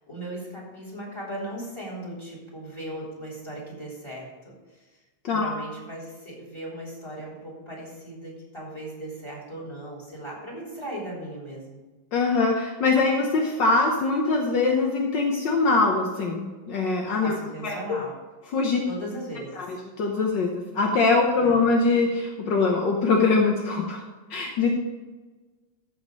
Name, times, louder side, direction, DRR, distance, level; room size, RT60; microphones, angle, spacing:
voice 1, 0.1-4.5 5.3-11.8 17.2-18.1 18.9-19.7 21.4-21.6, right 1 dB, 10° left, -3 dB, 3.4 m, -37 dB
voice 2, 5.2-5.6 12.1-17.4 17.6-18.0 18.5-18.8 19.7-24.0 24.3-24.7, left 3 dB, 70° left, 1 dB, 1.1 m, -23 dB
14.5 x 5.3 x 5.3 m, 1.2 s
omnidirectional pair, 3.3 m